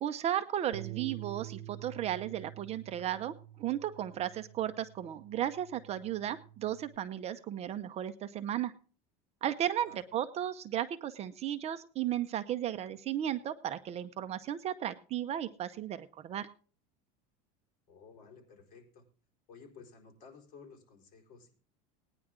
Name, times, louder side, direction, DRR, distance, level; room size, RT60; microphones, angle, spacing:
voice 1, 0.0-8.7 9.4-16.5, right 11 dB, 30° right, 10 dB, 0.6 m, -35 dB
Bass guitar, 0.7-7.0, right 14 dB, 90° right, 0.7 m, -48 dB
voice 2, 17.9-19.0 19.5-21.5, left 5 dB, 45° left, 1 dB, 4.2 m, -54 dB
18.5 x 9.8 x 3.7 m, 0.42 s
supercardioid pair, 150°, 20 cm